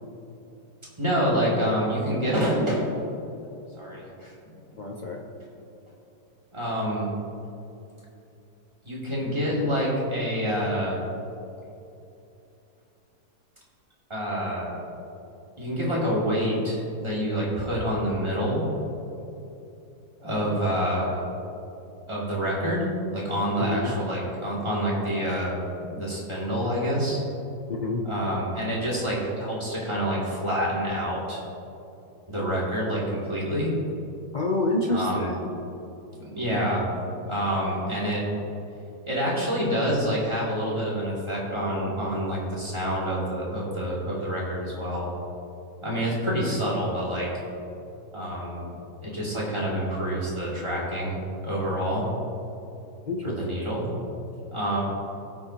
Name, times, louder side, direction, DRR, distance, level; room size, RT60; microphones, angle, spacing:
voice 1, 1.0-2.9 3.7-4.3 6.5-7.1 8.8-11.0 14.1-14.8 15.6-18.6 20.2-21.2 22.1-27.2 28.0-31.4 32.3-33.7 34.9-35.4 36.1-36.8 37.2-38.2 39.0-45.1 45.8-47.3 48.1-48.7 49.0-51.2 51.4-52.1 53.2-53.9 54.5-54.8, equal, 15° right, -6 dB, 2.4 m, -27 dB
voice 2, 4.8-5.2 23.6-23.9 27.7-28.0 34.3-35.5 36.5-36.8 53.0-53.8, left 2 dB, 70° left, 0 dB, 0.4 m, -28 dB
18.0 x 6.4 x 2.9 m, 2.8 s
omnidirectional pair, 1.8 m